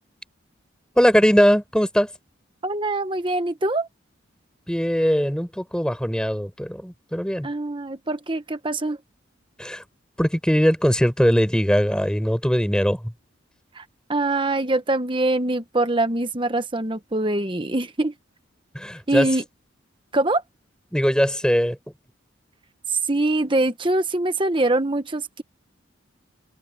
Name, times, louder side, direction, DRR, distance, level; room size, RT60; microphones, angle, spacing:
voice 1, 1.0-2.1 4.7-7.5 9.6-9.8 10.2-13.1 18.7-19.3 20.9-21.8, equal, 5° left, 6.4 m, -20 dB
voice 2, 2.6-3.9 7.4-9.0 13.8-13.9 14.1-18.1 19.1-19.4 20.1-20.4 23.1-25.4, right 2 dB, 25° right, 1.2 m, -23 dB
head